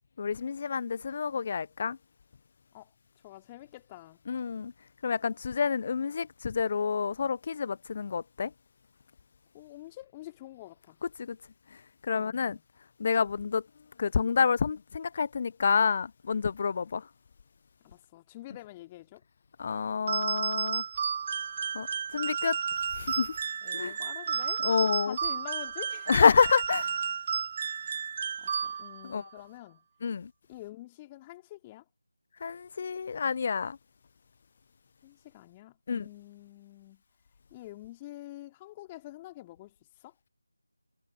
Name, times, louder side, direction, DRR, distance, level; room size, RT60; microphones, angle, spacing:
voice 1, 0.2-2.0 4.3-4.7 5.0-8.5 11.2-11.4 12.0-12.6 13.0-13.6 14.0-17.0 19.6-20.8 21.7-21.9 22.1-22.6 23.0-23.4 23.7-23.9 24.6-25.2 26.1-26.9 29.0-29.3 30.0-30.3 32.4-33.8 35.9-36.1, left 5 dB, 30° left, 0.6 m, -28 dB
voice 2, 3.2-4.2 9.5-11.0 12.1-12.6 17.8-19.2 23.6-24.6 25.0-26.1 28.4-29.8 30.5-31.8 35.0-37.0 37.5-39.7 40.0-40.1, left 16 dB, 15° left, 2.7 m, -47 dB
sound 1, 20.1-29.1, right 7 dB, 25° right, 0.5 m, -32 dB
figure-of-eight pair, 160°, 0 cm